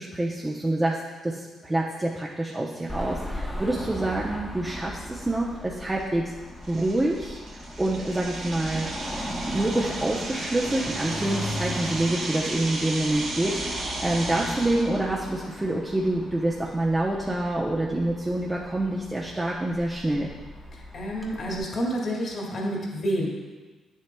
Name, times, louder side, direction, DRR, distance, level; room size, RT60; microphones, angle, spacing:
voice 1, 0.0-6.3 6.7-7.4 7.8-8.9 9.5-20.3, right 1 dB, 15° right, -4 dB, 0.7 m, -27 dB
Car passing by / Traffic noise roadway noise / Engine, 2.9-21.6, equal, 5° left, 1.1 m, -37 dB
sound 1, 4.8-4.9 5.4-5.6 6.0-6.1 6.6-15.0, right 2 dB, 75° right, 1.9 m, -35 dB
voice 2, 20.7-23.3, equal, 50° left, -2 dB, 2.0 m, -29 dB
9.0 x 7.4 x 2.3 m, 1.3 s
cardioid pair, 90°, 0 cm